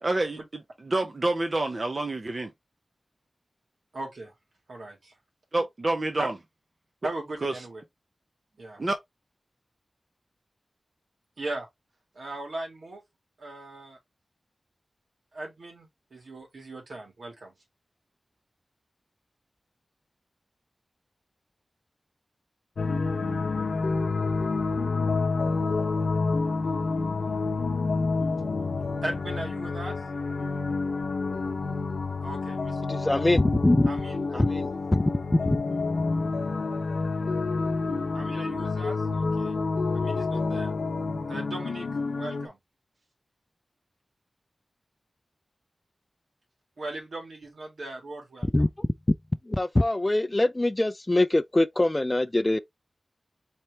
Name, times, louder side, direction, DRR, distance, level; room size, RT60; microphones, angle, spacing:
voice 1, 0.0-0.4 0.8-2.5 5.5-6.3 7.4-7.5 8.8-8.9, right 2 dB, 50° right, 0.8 m, -27 dB
voice 2, 3.9-4.3 4.7-5.1 6.2-6.3 7.0-7.8 8.6-8.8 11.4-11.7 12.1-13.0 13.4-14.0 15.3-17.5 29.0-30.0 32.2-32.8 33.9-34.4 38.1-39.6 39.9-40.7 41.3-41.9 42.2-42.6 46.8-48.7, right 2 dB, 85° right, 2.6 m, -38 dB
sound 1, 22.8-42.5, left 3 dB, 90° left, 0.8 m, -28 dB
voice 3, 32.9-33.9 34.3-35.0 48.5-48.9 49.5-52.6, left 1 dB, 25° left, 0.3 m, -23 dB
4.3 x 3.1 x 3.3 m
wide cardioid pair, 70°, 0 cm